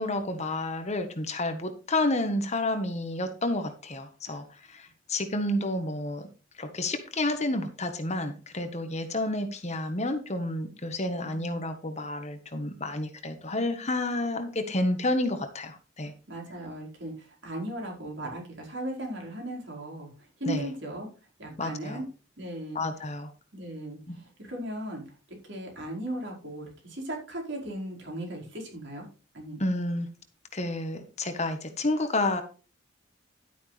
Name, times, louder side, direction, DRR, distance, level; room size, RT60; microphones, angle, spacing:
voice 1, 0.0-6.3 6.6-16.1 20.5-20.7 21.6-22.0 22.7-23.3 24.1-24.2 29.6-30.1 30.5-32.4, left 2 dB, 35° left, 8 dB, 1.4 m, -30 dB
voice 2, 11.0-11.7 16.0-21.1 21.4-22.0 22.4-22.8 23.5-25.0 25.4-29.1 29.3-29.6, right 1 dB, 60° right, -1 dB, 5.1 m, -37 dB
12.0 x 9.2 x 3.4 m, 0.35 s
head